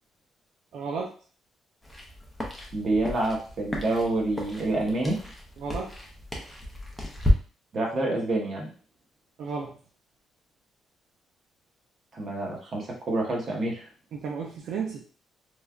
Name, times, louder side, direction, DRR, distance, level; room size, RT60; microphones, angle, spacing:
voice 1, 0.7-1.1 5.6-5.9 9.4-9.8 14.1-15.0, right 5 dB, 70° right, -1 dB, 0.4 m, -33 dB
sound 1, 1.8-7.3, equal, 5° left, 0.6 m, -32 dB
voice 2, 2.7-5.2 7.7-8.7 12.1-13.9, right 2 dB, 40° right, -2 dB, 0.9 m, -27 dB
3.2 x 2.3 x 2.4 m, 0.40 s
cardioid pair, 150°, 0 cm